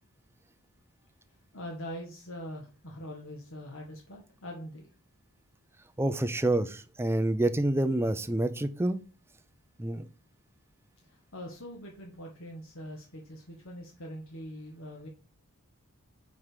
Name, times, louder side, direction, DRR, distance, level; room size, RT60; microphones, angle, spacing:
voice 1, 1.5-4.9 11.0-15.1, equal, 60° left, 1 dB, 1.4 m, -43 dB
voice 2, 6.0-9.0 9.8-10.1, right 1 dB, 10° right, 10 dB, 0.5 m, -28 dB
5.7 x 4.7 x 4.9 m, 0.36 s
head